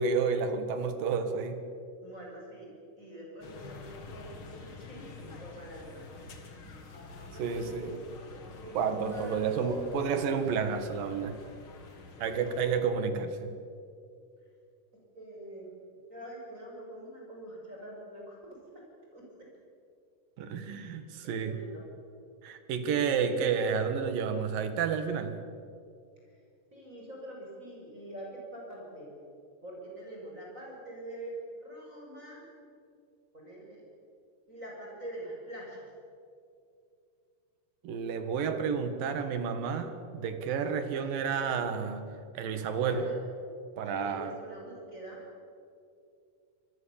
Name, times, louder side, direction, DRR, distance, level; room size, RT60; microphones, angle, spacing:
voice 1, 0.0-1.6 7.4-7.9 8.7-11.4 12.2-13.6 20.4-21.6 22.4-25.4 37.8-42.1 42.3-43.1 43.8-44.3, right 6 dB, 85° right, 8 dB, 3.4 m, -30 dB
voice 2, 2.0-8.0 8.6-9.8 12.1-12.4 14.9-18.8 19.1-19.5 20.6-21.9 26.2-26.4 26.7-29.1 29.6-32.4 33.3-33.8 34.5-35.9 41.0-41.4 42.8-43.3 43.8-45.2, right 1 dB, 20° right, -2 dB, 5.8 m, -45 dB
sound 1, 3.4-12.8, left 3 dB, 45° left, 2.5 m, -48 dB
26.5 x 20.5 x 7.1 m, 2.4 s
omnidirectional pair, 3.9 m